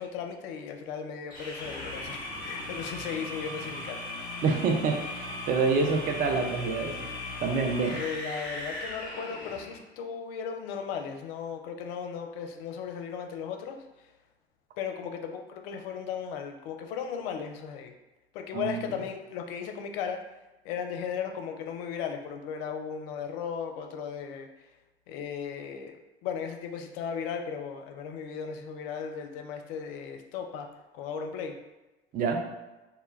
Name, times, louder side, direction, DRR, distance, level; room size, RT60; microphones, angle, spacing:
voice 1, 0.0-4.0 8.0-14.1 14.8-17.9 18.3-20.2 20.6-24.7 25.1-26.0 26.2-30.7 30.9-31.6, left 7 dB, 65° left, 5 dB, 0.5 m, -36 dB
sound 1, 1.3-9.8, left 2 dB, 30° left, 0.9 m, -38 dB
voice 2, 4.4-5.2 5.5-7.0 7.4-8.0 18.5-18.8 32.1-32.4, right 4 dB, 30° right, 3 dB, 0.4 m, -26 dB
2.2 x 2.2 x 3.1 m, 1.1 s
hypercardioid pair, 80°, 32 cm